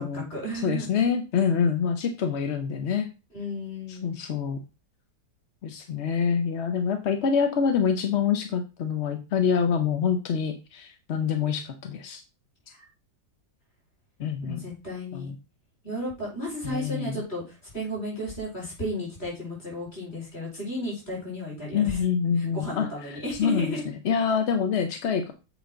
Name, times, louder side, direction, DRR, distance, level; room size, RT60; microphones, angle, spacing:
voice 1, 0.0-0.9 3.3-4.2 12.7-12.8 14.4-15.3 15.8-22.0 22.4-23.8, equal, 35° left, -4 dB, 5.3 m, -34 dB
voice 2, 0.6-3.1 3.9-4.6 5.6-12.2 14.2-14.6 15.1-15.3 16.6-17.2 21.7-23.8 24.0-25.3, left 6 dB, 55° left, 7 dB, 0.8 m, -26 dB
8.0 x 5.0 x 3.8 m, 0.29 s
omnidirectional pair, 1.8 m